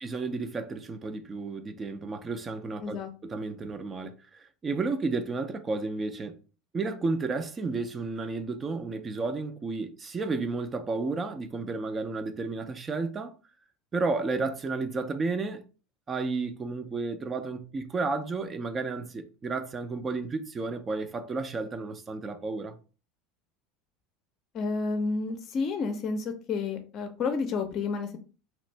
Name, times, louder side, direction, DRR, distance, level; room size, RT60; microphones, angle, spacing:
voice 1, 0.0-6.3 6.7-13.4 13.9-15.6 16.1-22.8, right 3 dB, 30° right, 0.5 m, -32 dB
voice 2, 24.5-28.2, left 4 dB, 45° left, 0.6 m, -30 dB
2.9 x 2.5 x 3.2 m
hypercardioid pair, 80°, 0 cm